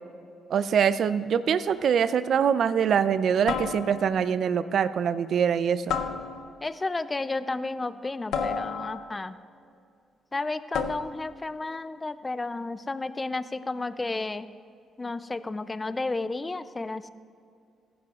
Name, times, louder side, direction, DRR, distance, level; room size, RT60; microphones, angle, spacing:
voice 1, 0.5-6.0, right 7 dB, 60° right, 14 dB, 0.4 m, -24 dB
sound 1, 1.7-2.0 3.5-4.3 5.9-6.7 8.3-9.3 10.7-11.3, left 6 dB, 80° left, 0.6 m, -32 dB
voice 2, 6.6-9.4 10.3-14.5 15.0-17.1, left 3 dB, 20° left, 14 dB, 0.4 m, -32 dB
15.5 x 10.0 x 2.4 m, 2.4 s
cardioid pair, 90°, 0 cm